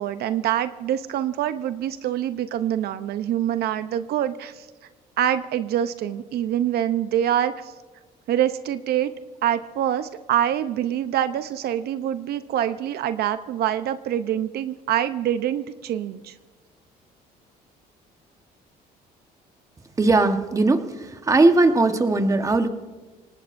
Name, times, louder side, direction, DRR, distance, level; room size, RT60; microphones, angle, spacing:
voice 1, 0.0-4.7 5.2-7.7 8.3-9.1 9.4-16.3, right 11 dB, 70° right, 11 dB, 0.7 m, -25 dB
voice 2, 20.0-22.7, right 2 dB, 20° right, 7 dB, 1.2 m, -19 dB
27.0 x 19.0 x 2.6 m, 1.3 s
cardioid pair, 110°, 17 cm